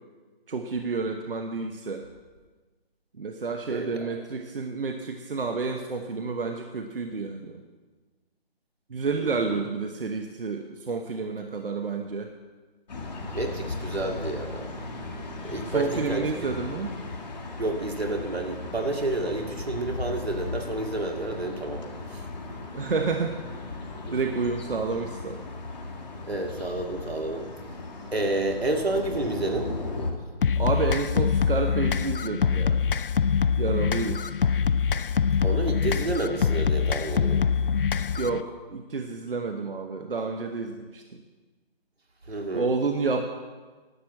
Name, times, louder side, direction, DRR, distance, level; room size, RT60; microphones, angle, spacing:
voice 1, 0.5-2.0 3.2-7.6 8.9-12.3 15.4-17.0 22.7-23.4 24.1-25.4 30.6-32.8 33.6-34.3 35.0-35.2 38.2-41.2 42.3-43.2, right 4 dB, 65° right, 5 dB, 1.0 m, -30 dB
voice 2, 3.7-4.1 9.2-9.7 13.3-14.7 15.4-16.3 17.6-21.8 22.1-22.3 24.0-24.2 26.3-27.5 28.1-29.7 35.4-37.5 42.3-42.7, right 2 dB, 90° right, 2 dB, 2.2 m, -30 dB
sound 1, 12.9-30.1, left 3 dB, 45° left, 2.1 m, -37 dB
sound 2, 30.4-38.4, left 6 dB, 60° left, 0.5 m, -24 dB
11.5 x 7.7 x 7.6 m, 1.3 s
figure-of-eight pair, 165°, 30 cm